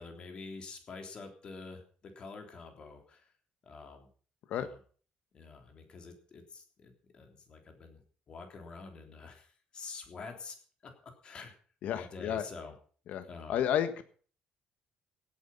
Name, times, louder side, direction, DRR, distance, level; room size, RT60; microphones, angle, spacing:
voice 1, 0.0-3.3 3.6-4.1 4.6-4.8 5.3-8.0 8.3-10.6 10.8-11.5 11.9-12.7 13.3-13.6, left 4 dB, 35° left, 4 dB, 3.4 m, -47 dB
voice 2, 11.8-12.5 13.1-14.0, left 10 dB, 60° left, 10 dB, 1.5 m, -32 dB
16.5 x 9.6 x 5.6 m, 0.42 s
cardioid pair, 165°, 3 cm